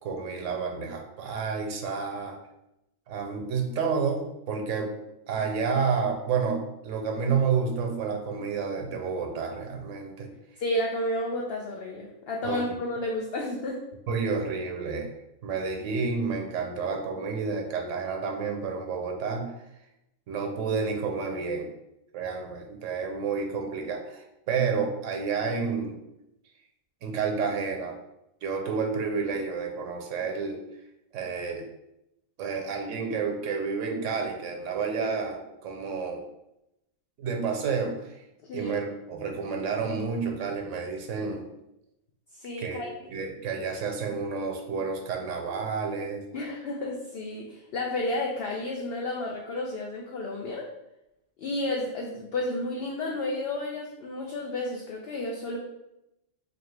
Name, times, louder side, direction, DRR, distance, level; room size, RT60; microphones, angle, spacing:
voice 1, 0.0-2.4 3.1-4.9 5.3-10.3 12.4-12.6 14.1-15.1 15.4-19.5 20.3-21.7 22.1-26.0 27.0-28.0 28.4-30.6 31.1-31.6 32.4-36.2 37.2-38.2 38.5-41.5 42.6-42.8 43.1-46.2, right 5 dB, 70° right, 3 dB, 1.0 m, -30 dB
voice 2, 10.6-13.8 38.4-38.7 42.4-43.1 46.3-50.7 51.4-55.6, left 1 dB, 65° left, -1 dB, 0.6 m, -31 dB
4.1 x 2.8 x 3.2 m, 0.88 s
omnidirectional pair, 1.4 m